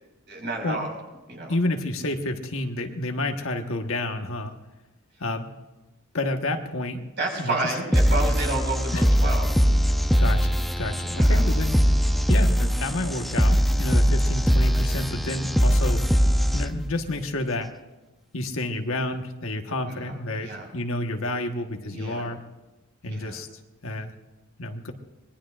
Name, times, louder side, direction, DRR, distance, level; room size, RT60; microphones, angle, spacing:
voice 1, 0.3-0.9 1.3-1.5 7.2-9.5 9.8-9.9 11.1-11.4 19.9-20.7 21.9-22.3 23.0-23.4, right 2 dB, 55° right, 1 dB, 5.4 m, -31 dB
voice 2, 1.5-4.5 5.2-5.5 6.1-7.0 7.4-7.7 8.9-9.1 10.2-11.8 12.3-16.1 16.5-17.7 18.3-22.4 23.0-23.5 23.8-24.1 24.6-24.9, left 2 dB, 65° left, 4 dB, 1.4 m, -30 dB
sound 1, 7.9-16.9, equal, ahead, 0.6 m, -21 dB
25.0 x 21.0 x 2.5 m, 1.1 s
head